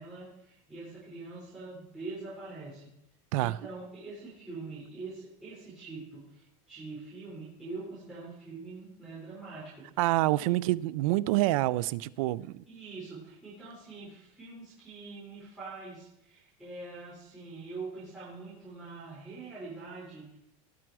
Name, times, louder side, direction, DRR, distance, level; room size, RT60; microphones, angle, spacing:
voice 1, 0.0-2.9 3.4-9.9 10.3-10.6 12.7-20.4, right 3 dB, 5° right, 3.6 m, -44 dB
voice 2, 10.0-12.6, right 17 dB, 75° right, 0.4 m, -27 dB
18.5 x 6.1 x 4.6 m
cardioid pair, 170°, 18 cm